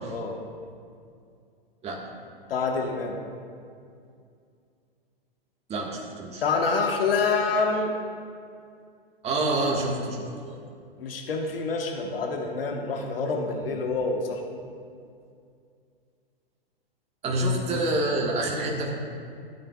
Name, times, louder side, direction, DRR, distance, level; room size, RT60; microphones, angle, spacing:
voice 1, 2.5-3.2 6.4-7.9 11.0-14.4, left 4 dB, 75° left, 2 dB, 1.2 m, -27 dB
voice 2, 5.7-6.4 9.2-10.5 17.2-18.9, right 1 dB, 20° right, -1 dB, 1.5 m, -27 dB
14.5 x 8.9 x 2.3 m, 2.3 s
hypercardioid pair, 115°, 29 cm